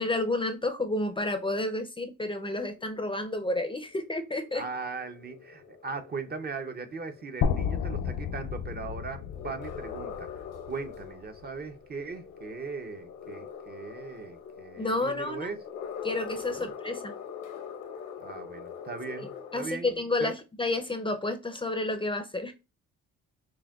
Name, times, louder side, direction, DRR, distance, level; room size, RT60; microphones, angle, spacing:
voice 1, 0.0-4.6 14.8-15.5 16.0-17.1 19.5-22.5, left 2 dB, 15° left, 0.5 m, -30 dB
sound 1, 2.3-19.7, left 7 dB, 85° left, 0.9 m, -44 dB
voice 2, 4.5-10.3 10.7-15.6 16.6-16.7 18.2-20.3, right 4 dB, 35° right, 0.6 m, -39 dB
sound 2, 7.4-11.4, left 6 dB, 65° left, 0.5 m, -32 dB
6.0 x 2.2 x 2.3 m
cardioid pair, 90°, 30 cm